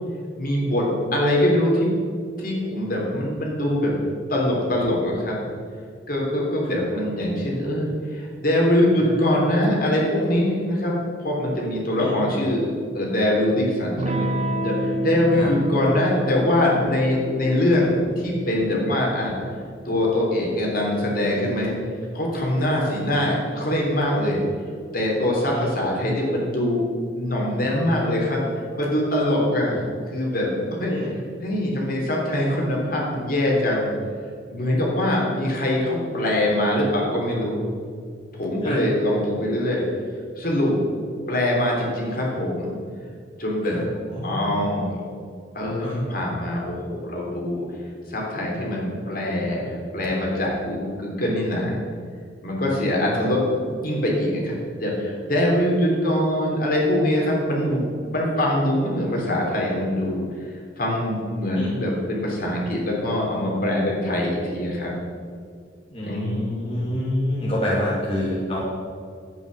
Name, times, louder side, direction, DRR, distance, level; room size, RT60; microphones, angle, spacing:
voice 1, 0.4-1.9 2.4-4.0 4.3-5.4 6.1-14.3 14.6-19.3 19.8-21.8 22.1-24.4 24.9-26.8 27.1-28.4 28.8-29.8 30.1-31.1 31.4-33.9 34.5-37.7 38.3-39.8 40.4-40.8 41.3-42.7 43.4-43.8 44.2-45.0 45.5-47.6 48.1-51.8 52.4-57.8 58.1-64.9 66.0-66.9, left 1 dB, 50° left, -2 dB, 3.3 m, -23 dB
Electric guitar / Strum, 14.0-22.3, right 1 dB, 35° right, 0.8 m, -30 dB
voice 2, 44.1-44.4 45.8-46.1 53.0-53.2 61.6-61.7 65.9-68.6, left 1 dB, 30° left, -7 dB, 2.3 m, -28 dB
11.0 x 9.2 x 6.5 m, 2.1 s
head